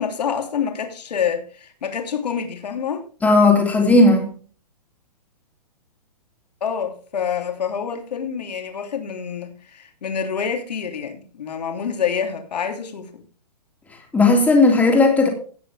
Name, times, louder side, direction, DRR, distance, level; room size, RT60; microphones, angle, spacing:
voice 1, 0.0-3.0 6.6-13.2, left 7 dB, 75° left, 3.2 m, -27 dB
voice 2, 3.2-4.3 14.1-15.3, left 2 dB, 5° left, 2.9 m, -15 dB
17.5 x 6.8 x 3.5 m
hypercardioid pair, 150°, 21 cm